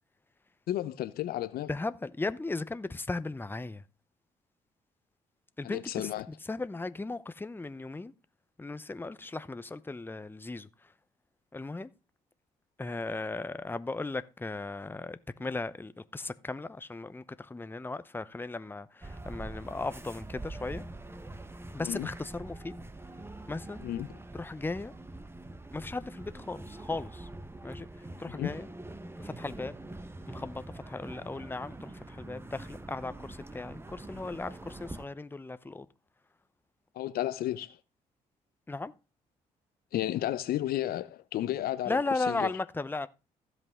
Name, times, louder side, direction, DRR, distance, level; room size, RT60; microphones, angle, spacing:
voice 1, 0.7-1.7 5.6-6.3 21.8-22.1 23.8-24.1 28.3-28.5 36.9-37.8 39.9-42.0 42.3-42.5, left 13 dB, 75° left, 0.7 m, -32 dB
voice 2, 1.7-3.8 5.6-8.1 8.6-10.7 11.5-11.9 12.8-20.8 21.7-22.7 23.5-23.8 24.3-24.9 25.7-27.3 27.6-27.9 28.2-28.7 29.2-29.7 30.3-35.9 38.7-38.9 41.9-43.1, left 3 dB, 15° left, 0.7 m, -36 dB
sound 1, 19.0-35.0, right 2 dB, 15° right, 1.2 m, -44 dB
15.5 x 5.5 x 3.6 m
supercardioid pair, 65°, 16 cm